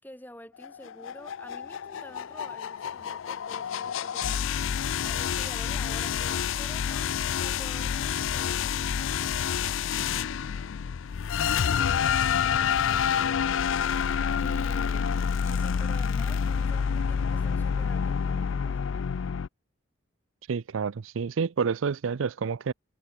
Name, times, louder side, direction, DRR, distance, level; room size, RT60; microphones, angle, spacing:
voice 1, 0.0-4.6 5.0-8.9 14.4-19.1, left 1 dB, 10° left, 5.9 m, -49 dB
sound 1, 0.6-19.5, left 7 dB, 75° left, 0.4 m, -28 dB
voice 2, 20.5-22.7, right 5 dB, 80° right, 0.5 m, -29 dB
head